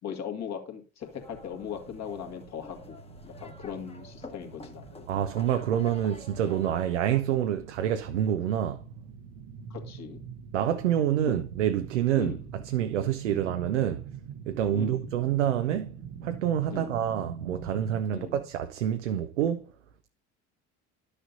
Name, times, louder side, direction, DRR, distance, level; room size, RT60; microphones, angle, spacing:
voice 1, 0.0-3.0 3.2-5.1 9.7-10.2 11.3-11.4 12.1-12.4 13.3-13.6 14.7-15.1 16.7-17.0 18.1-18.4, left 8 dB, 50° left, 2.1 m, -39 dB
sound 1, 1.0-7.2, left 3 dB, 15° left, 1.3 m, -48 dB
sound 2, 1.1-18.0, right 7 dB, 55° right, 0.9 m, -44 dB
voice 2, 5.1-8.8 10.5-14.0 14.5-15.9 16.2-19.6, right 10 dB, 85° right, 0.6 m, -27 dB
11.5 x 6.5 x 2.7 m
hypercardioid pair, 65°, 35 cm